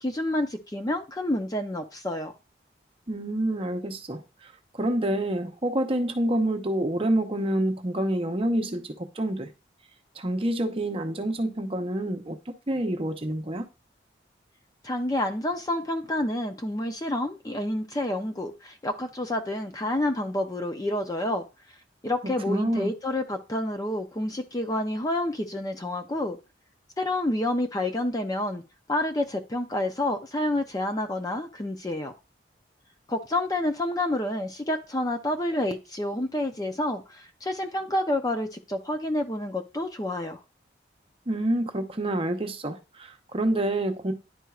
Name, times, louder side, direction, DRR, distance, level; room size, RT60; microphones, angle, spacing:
voice 1, 0.0-2.3 14.8-21.4 22.0-26.4 27.0-28.6 28.9-32.1 33.1-40.4, left 1 dB, 20° left, 0.5 m, -29 dB
voice 2, 3.1-4.2 4.8-8.8 9.2-9.5 10.2-12.4 12.7-13.7 22.5-22.9 41.3-44.1, right 1 dB, 30° right, 0.7 m, -27 dB
10.0 x 4.4 x 2.4 m
head